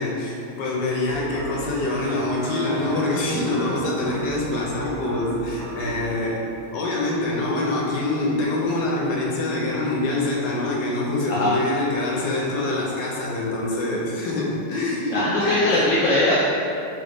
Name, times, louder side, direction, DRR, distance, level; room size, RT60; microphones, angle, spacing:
voice 1, 0.0-6.4 6.7-15.9, left 2 dB, 85° left, -3 dB, 1.3 m, -25 dB
sound 1, 1.0-6.3, right 3 dB, 80° right, 1.2 m, -34 dB
voice 2, 15.1-16.4, left 1 dB, 65° left, -6 dB, 0.8 m, -20 dB
3.8 x 3.4 x 3.8 m, 2.7 s
omnidirectional pair, 1.8 m